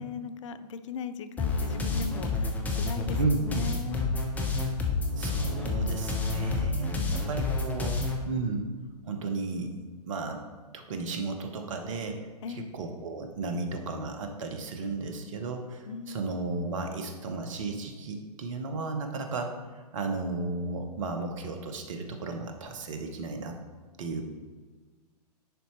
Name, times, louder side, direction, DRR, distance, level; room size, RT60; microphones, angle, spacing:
voice 1, 0.0-4.0 7.0-7.2 12.4-12.7 15.9-16.3, left 6 dB, 50° left, 11 dB, 0.5 m, -39 dB
sound 1, 1.4-8.2, left 3 dB, 5° left, 0.7 m, -29 dB
voice 2, 3.2-3.6 5.2-8.7 9.1-9.7 10.1-10.4 10.7-12.2 12.5-19.5 19.9-23.6 24.0-24.2, right 3 dB, 50° right, 5 dB, 1.0 m, -34 dB
10.0 x 4.2 x 3.1 m, 1.4 s
figure-of-eight pair, 115°, 21 cm